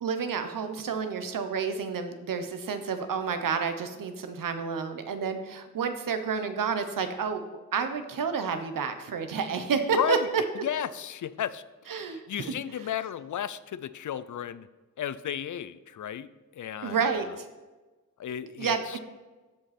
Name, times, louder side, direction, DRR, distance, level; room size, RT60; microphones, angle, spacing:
voice 1, 0.0-7.4 7.7-10.4 11.9-12.5 16.8-17.4 18.6-19.0, right 6 dB, 85° right, 8 dB, 1.0 m, -30 dB
voice 2, 9.9-10.3 10.6-11.6 12.1-14.7 15.0-17.3 18.2-19.0, left 9 dB, 65° left, 15 dB, 0.5 m, -33 dB
14.0 x 5.4 x 4.3 m, 1.2 s
wide cardioid pair, 125°, 32 cm